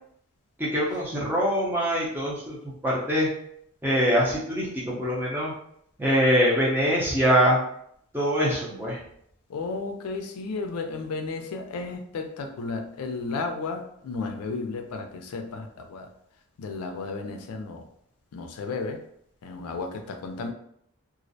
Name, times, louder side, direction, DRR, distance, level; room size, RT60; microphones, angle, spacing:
voice 1, 0.6-3.3 3.8-5.5 6.0-7.6 8.1-9.0, equal, 10° right, -5 dB, 0.5 m, -23 dB
voice 2, 9.5-16.1 16.6-17.9 18.3-19.0 19.4-20.5, left 3 dB, 85° left, 5 dB, 0.4 m, -33 dB
2.4 x 2.0 x 2.6 m, 0.70 s
head